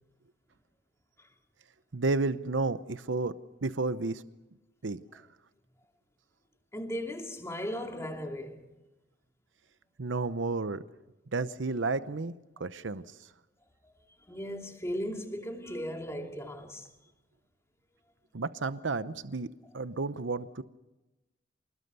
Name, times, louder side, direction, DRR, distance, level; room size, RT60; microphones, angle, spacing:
voice 1, 1.9-3.3 3.6-4.2 4.8-5.2 10.0-10.8 11.3-12.3 12.6-13.0 18.3-19.5 19.7-20.6, right 3 dB, 85° right, 0.8 m, -31 dB
voice 2, 6.7-8.7 14.3-16.9, equal, 15° left, 2.7 m, -37 dB
26.5 x 20.5 x 6.9 m
head